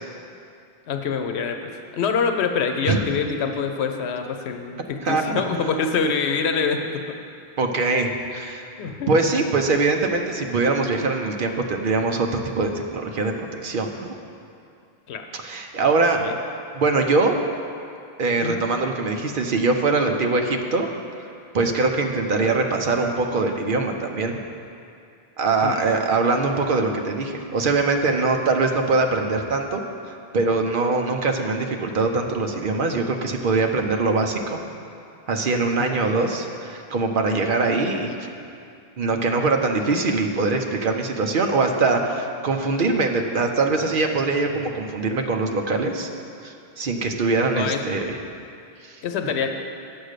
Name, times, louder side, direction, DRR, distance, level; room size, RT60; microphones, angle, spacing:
voice 1, 0.9-1.6 1.9-7.0 8.8-9.1 15.1-15.3 16.1-16.4 18.4-18.6 25.6-25.8 35.8-36.0 47.6-47.8 49.0-49.5, left 5 dB, 90° left, 5 dB, 0.9 m, -25 dB
voice 2, 5.0-5.4 7.6-14.1 15.3-16.2 16.7-17.4 18.2-20.9 21.2-21.3 21.5-24.4 25.4-29.8 30.1-34.6 35.3-38.1 39.0-46.1 46.4-48.2 48.8-49.0, right 3 dB, 55° right, 3 dB, 0.9 m, -22 dB
8.1 x 6.3 x 6.6 m, 2.5 s
omnidirectional pair, 1.1 m